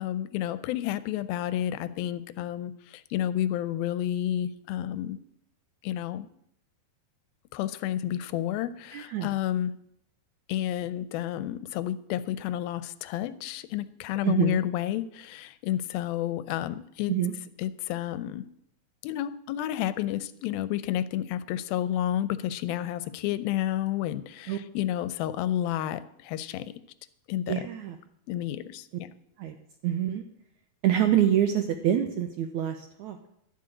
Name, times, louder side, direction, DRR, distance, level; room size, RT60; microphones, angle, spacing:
voice 1, 0.0-5.2 5.8-6.3 7.5-9.7 10.5-17.1 17.6-18.4 19.0-26.7 27.3-27.5 28.3-29.1, left 12 dB, 80° left, 14 dB, 2.4 m, -30 dB
voice 2, 8.9-9.4 14.2-14.6 17.1-17.3 24.5-24.6 27.5-28.0 29.4-29.6 29.8-30.2 30.8-33.2, right 10 dB, 85° right, 6 dB, 1.7 m, -26 dB
12.0 x 7.7 x 8.6 m, 0.73 s
omnidirectional pair, 4.4 m